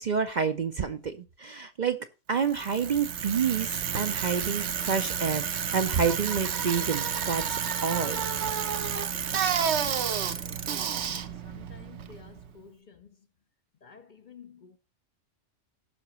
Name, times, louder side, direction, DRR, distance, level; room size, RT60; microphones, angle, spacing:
voice 1, 0.0-2.0 2.3-5.5 5.7-8.2, right 6 dB, 50° right, 0.6 m, -28 dB
Bicycle, 2.4-12.5, right 7 dB, 70° right, 1.1 m, -30 dB
voice 2, 11.4-12.7 13.8-14.0 14.3-14.8, left 6 dB, 50° left, 0.7 m, -50 dB
17.0 x 5.8 x 3.0 m
omnidirectional pair, 1.2 m